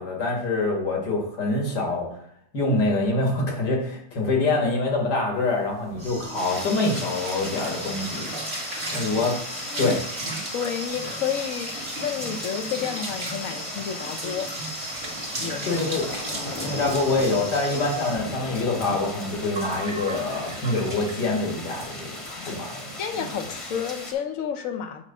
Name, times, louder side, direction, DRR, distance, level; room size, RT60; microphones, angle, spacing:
voice 1, 0.0-2.1 2.5-8.3 8.9-9.4 9.8-10.0 15.6-16.1 16.6-22.2 22.4-22.9, left 2 dB, 80° left, 2.2 m, -25 dB
sound 1, 5.5-21.3 21.7-21.9 22.2-22.3 22.6-23.0, right 1 dB, 40° right, 1.9 m, -35 dB
sound 2, 6.3-24.1, left 1 dB, 20° left, 1.1 m, -37 dB
voice 2, 10.5-14.5 15.4-15.8 16.2-16.8 22.3-22.6 23.0-25.0, left 8 dB, 60° left, 1.1 m, -31 dB
8.3 x 3.1 x 5.5 m
omnidirectional pair, 1.8 m